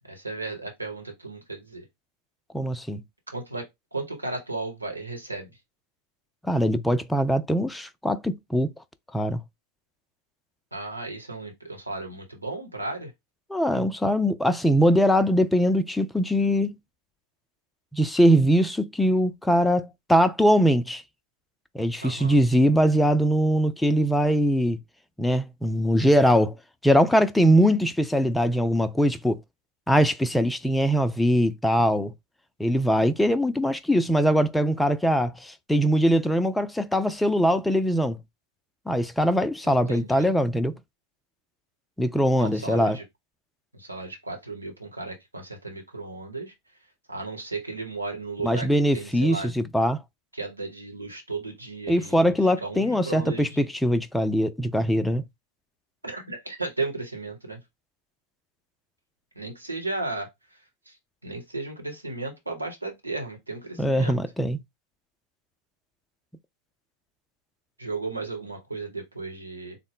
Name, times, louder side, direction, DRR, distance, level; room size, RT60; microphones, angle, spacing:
voice 1, 0.1-1.8 3.3-5.5 10.7-13.1 22.0-22.4 39.6-40.3 42.4-43.0 43.7-46.5 47.1-48.7 48.9-49.5 50.3-52.3 52.6-53.6 56.0-57.6 59.3-60.3 60.9-61.0 61.2-64.2 67.8-69.8, right 3 dB, 80° right, 1.1 m, -35 dB
voice 2, 2.5-3.0 6.5-8.7 9.1-9.4 13.5-16.8 17.9-21.0 21.7-24.8 25.2-26.5 26.8-29.4 29.9-32.1 32.6-38.2 38.9-40.7 42.0-43.0 48.4-50.0 51.9-55.2 63.8-64.6, equal, 5° left, 0.4 m, -22 dB
3.6 x 2.1 x 3.7 m
figure-of-eight pair, 90°, 0 cm